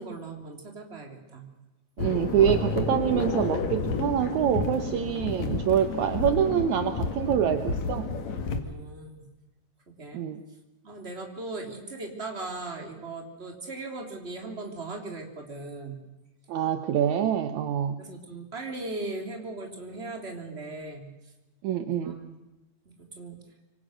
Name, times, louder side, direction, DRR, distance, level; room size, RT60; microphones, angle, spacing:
voice 1, 0.0-1.5 8.6-9.3 9.9-10.3 10.8-16.0 18.0-21.1 22.0-22.4 22.9-23.4, right 2 dB, 20° right, 3 dB, 3.5 m, -38 dB
sound 1, 2.0-8.6, left 4 dB, 60° left, 3.2 m, -30 dB
voice 2, 2.0-8.1 10.1-10.4 16.5-18.0 21.6-22.2, right 9 dB, 70° right, 9 dB, 2.2 m, -25 dB
26.0 x 25.0 x 6.5 m, 1.0 s
omnidirectional pair, 3.7 m